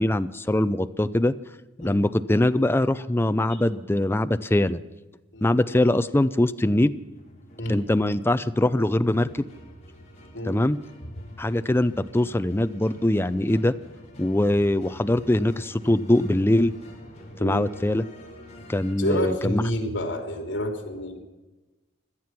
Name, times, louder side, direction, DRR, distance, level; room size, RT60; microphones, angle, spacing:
voice 1, 0.0-1.3 1.8-4.8 5.4-6.9 7.7-9.3 10.4-10.8 11.4-13.7 14.2-16.7 17.4-18.0 18.7-19.6, left 1 dB, 10° left, 12 dB, 0.5 m, -22 dB
sound 1, 6.9-18.9, equal, 35° left, 3.9 m, -47 dB
voice 2, 19.0-21.2, left 1 dB, 75° left, 4 dB, 3.1 m, -28 dB
17.5 x 12.5 x 5.9 m, 1.1 s
head